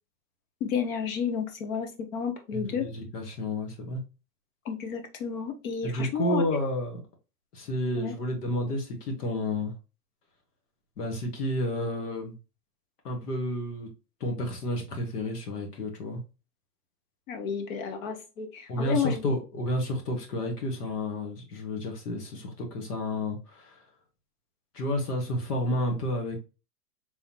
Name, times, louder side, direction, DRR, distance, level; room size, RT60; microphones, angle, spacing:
voice 1, 0.6-2.9 4.6-6.4 8.0-8.1 17.3-19.3, left 6 dB, 55° left, 1.4 m, -31 dB
voice 2, 2.5-4.0 5.8-7.0 7.5-9.7 11.0-12.3 13.0-13.9 14.2-16.2 18.7-23.8 24.7-26.5, left 1 dB, 75° left, 2.0 m, -31 dB
4.0 x 3.5 x 3.1 m
hypercardioid pair, 115°, 47 cm